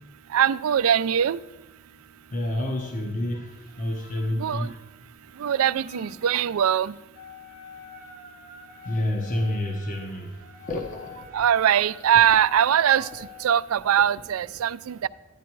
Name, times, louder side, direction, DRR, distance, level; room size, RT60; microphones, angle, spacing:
voice 1, 0.3-1.4 4.4-4.7 5.4-6.9 11.3-15.1, right 9 dB, 85° right, 17 dB, 0.4 m, -22 dB
voice 2, 2.3-4.8 5.9-6.1 8.8-10.4 10.7-11.3, left 1 dB, 40° left, 2 dB, 1.0 m, -29 dB
Wind instrument woodwind instrument, 7.1-13.6, left 5 dB, 70° left, 5.2 m, -46 dB
12.0 x 10.0 x 4.6 m, 1.0 s
head